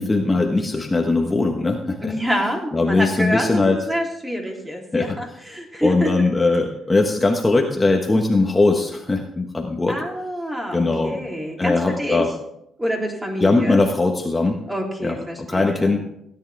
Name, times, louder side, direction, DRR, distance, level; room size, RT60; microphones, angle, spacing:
voice 1, 0.0-2.1 2.7-3.9 4.9-10.0 10.7-11.2 11.6-12.3 13.4-14.6 15.0-16.0, left 3 dB, 20° left, 2 dB, 1.3 m, -20 dB
voice 2, 2.0-6.1 9.9-12.2 12.8-13.8 14.7-15.9, equal, 15° right, 0 dB, 3.4 m, -27 dB
17.0 x 10.5 x 3.5 m, 0.75 s
cardioid pair, 90°, 0 cm